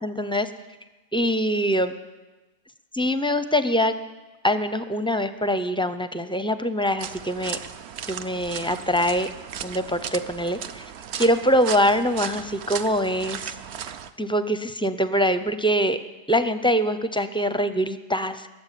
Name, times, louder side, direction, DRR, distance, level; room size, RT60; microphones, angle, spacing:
voice 1, 0.0-0.5 1.1-1.9 2.9-3.9 4.4-7.6 8.1-9.3 9.6-10.9 11.2-13.5 14.2-16.0 16.3-18.5, equal, 10° left, 11 dB, 0.3 m, -23 dB
sound 1, 7.0-14.1, right 8 dB, 75° right, 0.9 m, -36 dB
19.0 x 7.4 x 9.9 m, 1.2 s
omnidirectional pair, 1.1 m